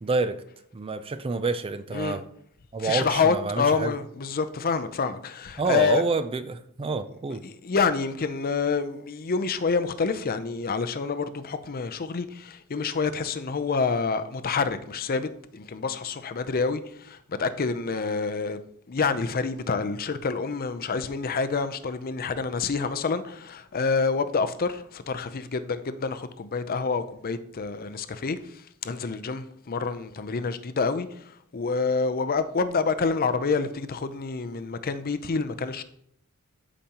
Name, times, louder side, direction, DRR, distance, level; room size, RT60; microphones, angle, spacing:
voice 1, 0.0-0.4 0.7-2.3 2.7-4.0 5.6-7.4, right 3 dB, 25° right, 0.4 m, -28 dB
voice 2, 2.8-6.0 7.4-18.6 18.9-28.4 28.8-31.1 31.5-35.8, left 4 dB, 40° left, 0.5 m, -27 dB
13.5 x 5.1 x 2.9 m
head